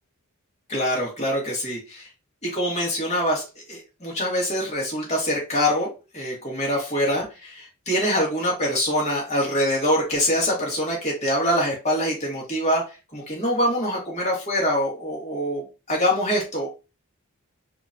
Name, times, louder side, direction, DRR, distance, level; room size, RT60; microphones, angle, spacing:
voice 1, 0.7-2.1 2.4-12.8 13.1-16.7, equal, 30° left, -4 dB, 2.0 m, -24 dB
4.4 x 3.1 x 2.7 m, 0.30 s
head